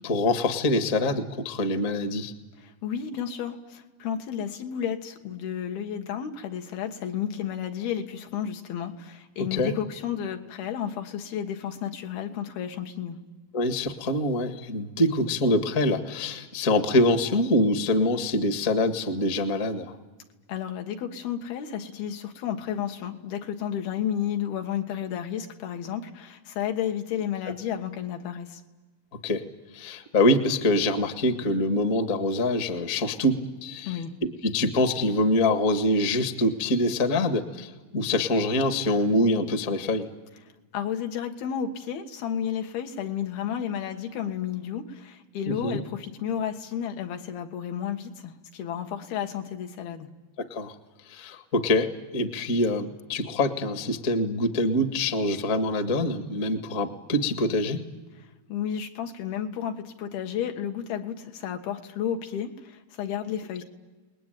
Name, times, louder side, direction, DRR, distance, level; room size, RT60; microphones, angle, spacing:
voice 1, 0.0-2.3 9.5-9.7 13.5-19.9 29.2-29.4 29.7-33.3 33.6-34.0 34.4-40.1 45.5-45.8 50.5-50.7 51.0-51.9 52.1-57.8, left 1 dB, 40° left, 7 dB, 1.2 m, -25 dB
voice 2, 2.6-13.2 20.5-28.6 33.9-34.1 40.7-50.1 58.2-63.6, left 9 dB, 80° left, 5 dB, 3.5 m, -32 dB
29.5 x 20.5 x 9.2 m, 1.3 s
omnidirectional pair, 4.3 m